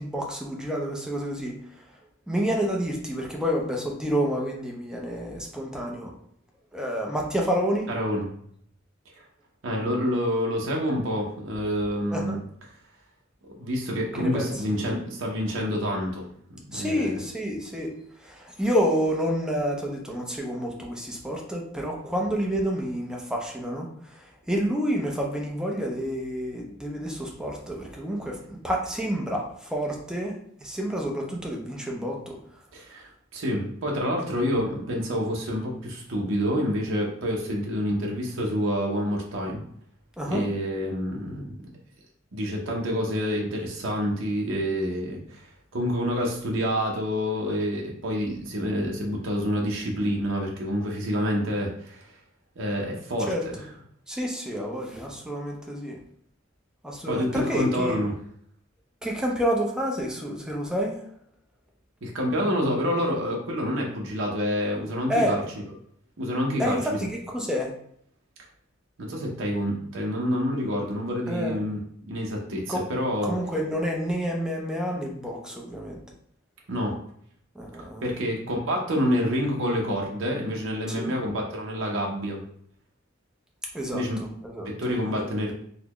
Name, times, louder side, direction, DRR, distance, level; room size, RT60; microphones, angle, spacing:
voice 1, 0.0-1.6 2.3-6.1 6.7-7.9 12.1-12.4 14.2-14.6 16.7-17.9 18.2-30.3 30.6-32.4 40.2-40.4 53.3-53.7 54.1-56.0 56.8-58.0 59.0-61.0 65.1-65.4 66.6-67.7 71.3-71.6 72.7-72.8 73.2-76.0 77.5-78.1 80.9-81.1 83.7-85.3, equal, 5° right, -1 dB, 0.6 m, -29 dB
voice 2, 7.9-8.3 9.2-9.3 9.6-12.4 13.6-16.2 16.6-17.2 32.7-39.6 40.2-41.6 42.3-45.5 45.7-52.1 52.6-53.5 57.1-58.1 62.0-65.4 66.2-67.0 69.0-73.3 76.7-76.9 78.0-82.4 83.9-84.2 84.6-85.5, equal, 75° right, -1 dB, 0.8 m, -28 dB
4.0 x 2.2 x 2.9 m, 0.66 s
head